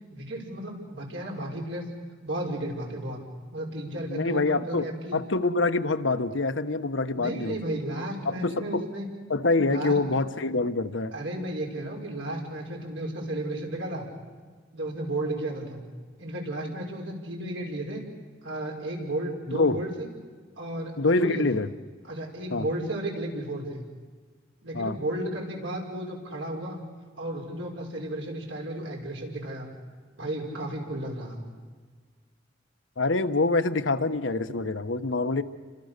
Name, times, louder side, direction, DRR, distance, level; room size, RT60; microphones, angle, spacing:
voice 1, 0.1-1.8 2.2-3.2 3.5-5.2 7.1-9.1 9.7-10.0 11.1-14.1 14.7-15.8 16.2-18.0 18.4-20.1 20.6-21.4 22.0-23.8 24.6-26.8 27.2-29.7 30.2-31.5, right 1 dB, 85° right, 0 dB, 5.8 m, -33 dB
voice 2, 4.1-4.8 5.1-7.7 8.2-8.8 9.3-11.1 19.5-19.8 21.0-21.7 22.5-22.6 24.7-24.9 33.0-35.4, left 3 dB, 85° left, 9 dB, 1.2 m, -25 dB
29.5 x 25.5 x 6.8 m, 1.5 s
head